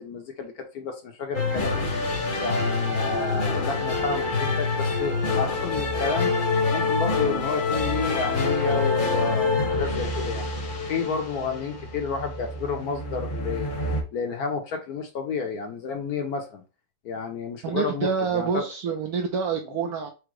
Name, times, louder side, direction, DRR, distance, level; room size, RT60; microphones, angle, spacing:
voice 1, 0.0-6.3 6.7-10.5 10.9-13.7 14.1-16.6 17.0-18.6 19.7-19.9, left 5 dB, 60° left, 4 dB, 1.1 m, -31 dB
sound 1, 1.3-14.0, left 3 dB, 35° left, 0.9 m, -26 dB
voice 2, 17.6-20.1, right 6 dB, 70° right, 3 dB, 0.9 m, -27 dB
4.9 x 2.1 x 4.6 m, 0.32 s
omnidirectional pair, 2.1 m